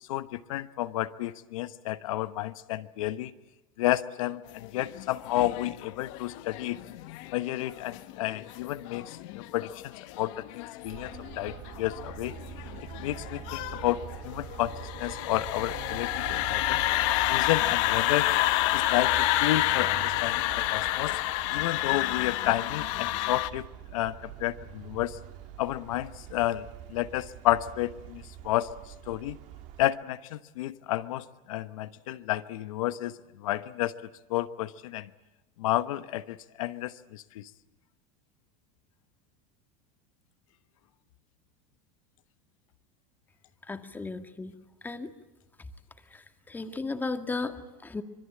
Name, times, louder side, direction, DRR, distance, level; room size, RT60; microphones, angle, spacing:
voice 1, 0.1-3.3 3.8-6.8 7.3-11.1 11.4-12.3 13.0-14.0 14.2-14.7 15.0-16.8 17.3-18.3 18.7-21.2 21.5-23.7 23.9-24.1 24.4-25.2 25.6-28.7 29.1-29.4 29.8-33.1 33.4-33.9 34.3-35.1 35.6-37.5, left 15 dB, 85° left, 12 dB, 1.1 m, -31 dB
sound 1, 4.6-23.5, left 17 dB, 65° left, 1.3 m, -30 dB
Traffic noise roadway noise, 10.9-29.8, right 10 dB, 50° right, 2.1 m, -44 dB
voice 2, 43.6-44.6 44.8-45.1 45.6-45.7 46.0-48.0, left 3 dB, 10° left, 7 dB, 1.9 m, -35 dB
26.0 x 21.5 x 8.7 m, 1.0 s
supercardioid pair, 135°, 17 cm